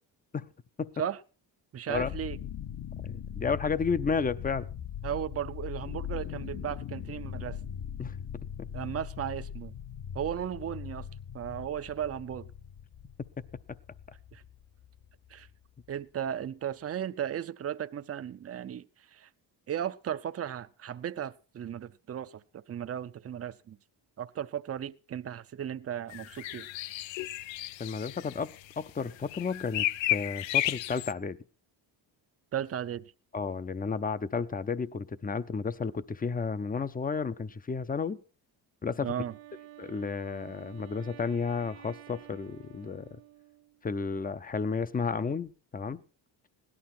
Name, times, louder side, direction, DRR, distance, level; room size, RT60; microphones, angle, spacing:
voice 1, 1.7-2.4 5.0-7.6 8.7-9.7 10.1-11.1 11.3-12.5 14.3-14.4 15.3-15.5 15.9-19.3 19.7-23.8 24.2-26.7 32.5-33.0 39.0-39.3, right 9 dB, 30° right, 0.6 m, -35 dB
sound 1, 1.9-15.9, left 9 dB, 45° left, 0.9 m, -40 dB
voice 2, 3.0-4.7 8.0-8.1 8.6-8.7 27.8-31.4 33.3-38.2 38.8-39.1 39.8-43.1 43.8-46.0, left 5 dB, 20° left, 0.6 m, -32 dB
sound 2, 26.1-28.8 29.1-31.1, left 14 dB, 70° left, 0.6 m, -33 dB
Wind instrument woodwind instrument, 39.1-43.9, right 14 dB, 70° right, 1.5 m, -51 dB
17.0 x 11.5 x 4.3 m
cardioid pair, 100°, 47 cm